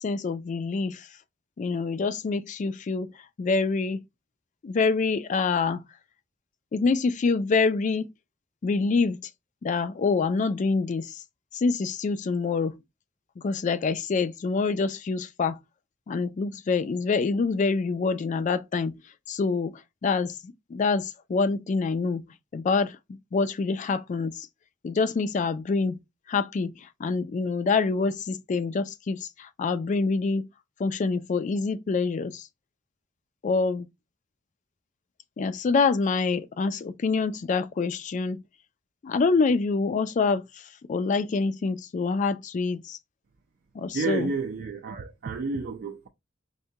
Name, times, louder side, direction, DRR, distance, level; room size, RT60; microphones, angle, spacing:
voice 1, 0.0-1.1 1.6-4.0 4.6-5.8 6.7-8.1 8.6-9.2 9.6-11.2 11.5-12.8 13.4-15.6 16.1-18.9 19.3-22.2 22.5-24.5 24.8-26.0 26.3-30.5 30.8-32.5 33.4-33.9 35.4-38.4 39.0-43.0 43.7-44.3, left 4 dB, 40° left, 0.3 m, -26 dB
voice 2, 43.9-46.1, right 4 dB, 50° right, 0.4 m, -31 dB
4.7 x 2.1 x 2.7 m
head